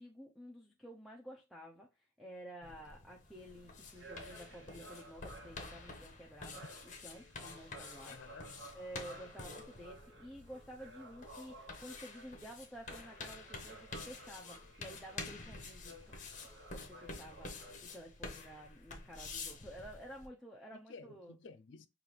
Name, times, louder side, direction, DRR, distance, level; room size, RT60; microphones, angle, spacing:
voice 1, 0.0-8.2 8.7-21.3, equal, ahead, 0.5 m, -52 dB
sound 1, 2.6-20.3, left 3 dB, 40° left, 0.8 m, -49 dB
sound 2, 3.3-17.7, right 1 dB, 60° right, 1.0 m, -56 dB
voice 2, 8.0-8.7 20.7-21.9, left 4 dB, 65° left, 0.4 m, -53 dB
5.3 x 2.4 x 3.1 m
head